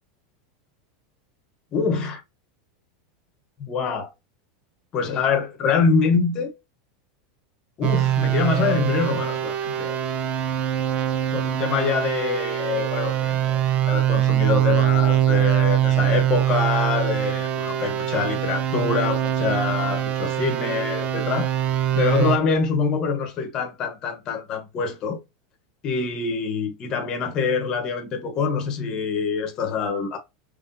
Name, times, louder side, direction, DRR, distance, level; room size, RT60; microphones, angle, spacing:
voice 1, 1.7-2.2 3.6-4.1 4.9-6.5 7.8-10.0 11.3-21.5 21.9-25.2 25.8-30.2, left 5 dB, 30° left, 1.1 m, -25 dB
sound 1, 7.8-22.4, right 11 dB, 35° right, 0.6 m, -23 dB
5.5 x 3.2 x 2.6 m
supercardioid pair, 160°, 2 cm